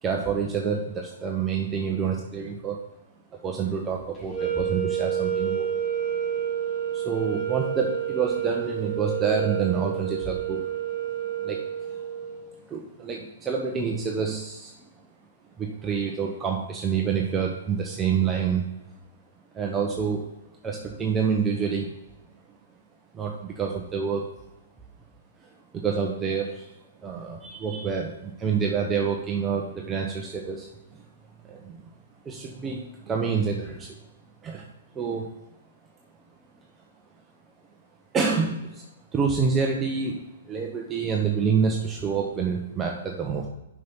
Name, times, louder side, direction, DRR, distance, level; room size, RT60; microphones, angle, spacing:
voice 1, 0.0-2.9 3.4-5.7 6.9-10.7 11.4-11.6 12.7-14.7 15.6-18.7 19.5-20.3 20.6-21.9 23.1-24.3 25.7-26.7 27.0-30.7 31.4-31.8 32.2-34.0 34.4-34.7 34.9-35.3 38.1-38.8 39.1-43.5, right 6 dB, 20° right, 0 dB, 0.9 m, -27 dB
sound 1, 4.3-12.5, right 9 dB, 20° left, 1.9 m, -29 dB
6.2 x 5.9 x 5.5 m, 0.95 s
hypercardioid pair, 135°, 0 cm